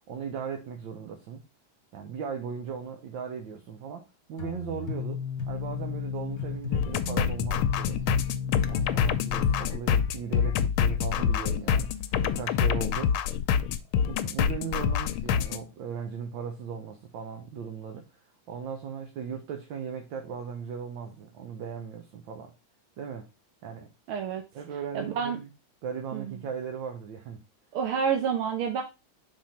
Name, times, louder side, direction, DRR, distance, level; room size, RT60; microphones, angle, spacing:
voice 1, 0.1-1.4 1.9-8.2 8.7-11.9 12.2-13.2 14.1-22.5 23.0-23.3 23.6-23.9 24.5-25.5 25.8-27.4, right 6 dB, 70° right, 1.6 m, -37 dB
sound 1, 4.4-9.7, left 6 dB, 50° left, 1.5 m, -34 dB
sound 2, 6.7-15.6, left 8 dB, 80° left, 1.4 m, -26 dB
voice 2, 24.1-24.4 24.9-25.4 26.1-26.3 27.7-28.8, right 7 dB, 85° right, 1.7 m, -28 dB
5.2 x 3.6 x 5.6 m
omnidirectional pair, 2.3 m